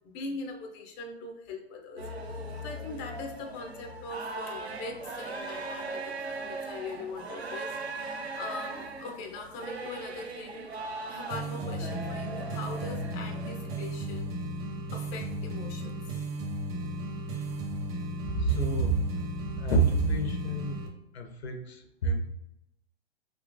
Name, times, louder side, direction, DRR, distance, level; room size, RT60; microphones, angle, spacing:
voice 1, 0.1-10.6 11.1-14.4 14.9-16.2, left 3 dB, 15° left, 2 dB, 0.3 m, -41 dB
sound 1, 2.0-13.9, right 3 dB, 85° right, 0.7 m, -39 dB
sound 2, 11.3-20.9, right 1 dB, 40° right, 0.8 m, -35 dB
voice 2, 18.3-19.0 19.6-20.8 21.1-22.2, right 3 dB, 90° left, 6 dB, 0.7 m, -27 dB
3.6 x 2.8 x 2.5 m, 0.84 s
hypercardioid pair, 125°, 31 cm